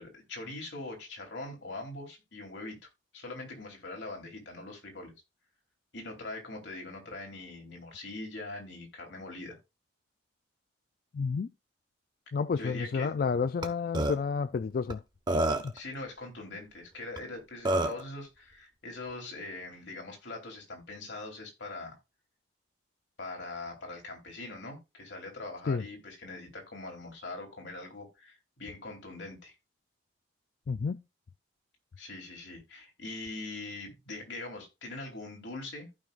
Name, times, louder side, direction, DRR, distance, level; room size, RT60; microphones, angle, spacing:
voice 1, 0.0-5.1 5.9-9.6 12.6-13.1 15.7-22.0 23.2-29.6 32.0-35.9, left 2 dB, 85° left, 3.2 m, -42 dB
voice 2, 11.1-11.5 12.3-15.0 15.6-15.7 25.7-25.8 30.7-31.0, left 5 dB, 55° left, 0.3 m, -30 dB
Burping eructation, 13.6-13.7 13.9-14.1 14.9-15.0 15.3-15.8 17.2-17.3 17.6-18.0, right 1 dB, 25° right, 1.1 m, -27 dB
15.0 x 5.2 x 2.4 m
head